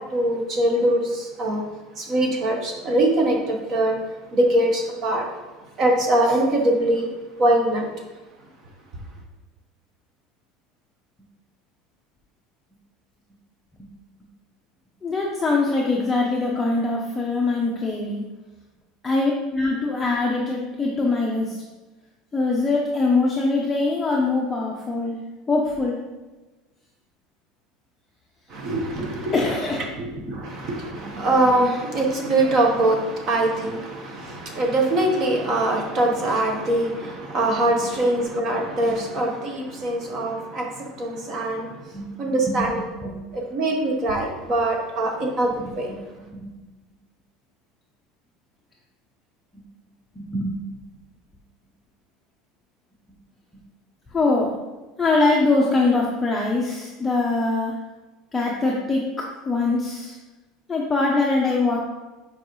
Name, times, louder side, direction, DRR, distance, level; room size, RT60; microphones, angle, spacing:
voice 1, 0.1-1.6 2.0-4.0 4.3-5.3 5.8-7.1 7.4-7.9 28.5-29.3 30.0-41.8 42.2-45.9, right 1 dB, 35° right, 1 dB, 1.0 m, -23 dB
voice 2, 15.0-18.2 19.0-21.6 22.3-25.2 25.5-26.0 29.3-29.8 30.3-30.4 31.2-31.3 38.9-39.0 41.9-42.8 43.0-43.2 45.6-45.7 46.4-46.5 50.1-50.5 54.1-54.5 55.0-57.7 58.3-60.2 60.7-61.8, left 3 dB, 10° left, -3 dB, 0.6 m, -23 dB
7.6 x 4.8 x 3.1 m, 1.2 s
cardioid pair, 170°, 0 cm